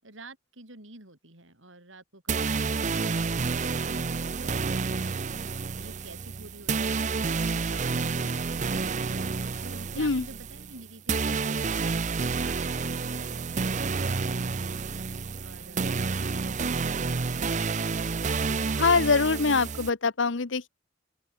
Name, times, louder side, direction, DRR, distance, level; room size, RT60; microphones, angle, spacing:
voice 1, 0.0-5.1 5.7-9.0 9.6-11.9 12.4-14.8 15.4-17.4, right 2 dB, 75° right, 6.8 m, -49 dB
sound 1, 2.3-19.9, right 4 dB, 40° right, 0.6 m, -29 dB
voice 2, 18.8-20.7, left 4 dB, 70° left, 0.9 m, -24 dB
open air
head